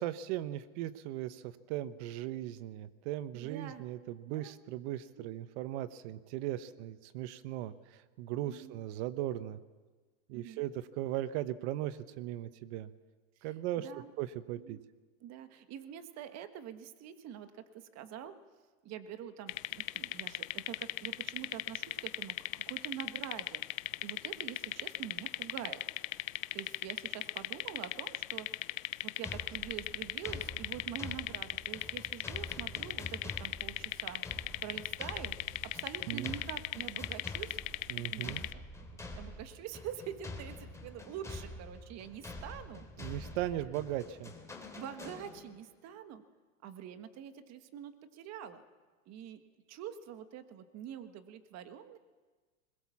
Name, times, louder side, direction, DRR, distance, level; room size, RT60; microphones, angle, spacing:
voice 1, 0.0-9.6 10.3-12.9 13.4-13.9 14.2-14.8 36.1-36.3 37.9-38.4 43.0-44.3, right 13 dB, 60° right, 13 dB, 1.1 m, -38 dB
voice 2, 3.3-3.8 4.2-4.5 5.2-5.3 8.5-8.7 10.3-10.6 13.4-13.5 13.8-14.1 14.6-14.8 15.2-18.4 18.8-25.8 26.5-28.7 29.0-35.3 35.6-37.6 38.0-38.6 39.1-43.2 44.7-46.2 46.6-48.6 49.0-49.4 49.7-52.0, right 9 dB, 40° right, 9 dB, 1.6 m, -46 dB
sound 1, 19.5-38.5, left 16 dB, 85° left, 0.8 m, -38 dB
sound 2, 29.2-45.7, left 2 dB, 5° left, 3.1 m, -47 dB
21.5 x 21.0 x 7.3 m, 1.3 s
supercardioid pair, 120°, 39 cm